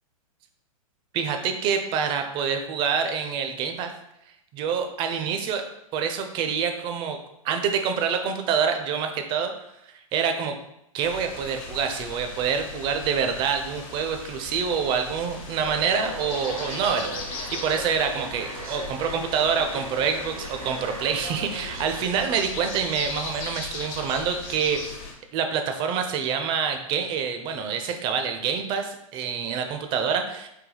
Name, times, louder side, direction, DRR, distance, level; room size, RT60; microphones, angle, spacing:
voice 1, 1.1-3.9 4.5-5.6 5.9-7.2 7.4-9.5 10.1-10.6 10.9-25.0 25.3-30.5, right 6 dB, 25° right, 6 dB, 0.4 m, -26 dB
sound 1, 11.0-25.1, left 4 dB, 40° left, 0.7 m, -38 dB
sound 2, 15.7-22.0, right 2 dB, 75° right, 0.7 m, -38 dB
3.8 x 2.2 x 3.2 m, 0.80 s
hypercardioid pair, 115°, 18 cm